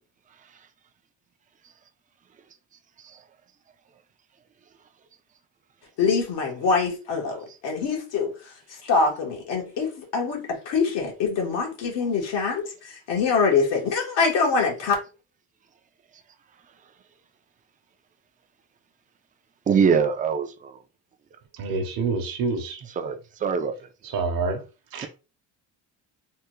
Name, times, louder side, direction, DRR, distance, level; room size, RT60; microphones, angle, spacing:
voice 1, 6.0-7.4 7.6-8.3 8.8-12.6 12.9-14.9, left 5 dB, 85° left, 1.5 m, -24 dB
voice 2, 19.7-20.8 23.0-23.9, right 6 dB, 20° right, 0.4 m, -24 dB
voice 3, 21.5-22.9 24.0-24.6 24.9-25.1, right 4 dB, 55° right, 0.8 m, -27 dB
3.5 x 2.3 x 3.0 m
cardioid pair, 95°, 42 cm